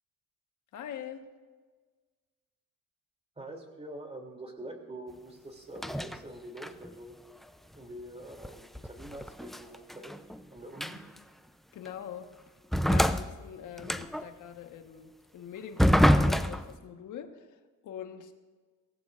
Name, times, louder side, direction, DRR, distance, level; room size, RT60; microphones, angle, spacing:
voice 1, 0.7-1.3 11.7-12.3 12.9-18.4, left 9 dB, 80° left, 6 dB, 1.5 m, -44 dB
voice 2, 3.4-7.1 7.7-10.1 10.5-11.0, right 1 dB, 20° right, 2 dB, 3.1 m, -45 dB
sound 1, 5.8-6.2 6.6-6.9 8.4-10.4 10.8-11.2 11.9-12.0 12.7-14.3 15.8-16.8, equal, ahead, 0.6 m, -26 dB
23.0 x 17.5 x 2.6 m, 1.4 s
cardioid pair, 90°, 30 cm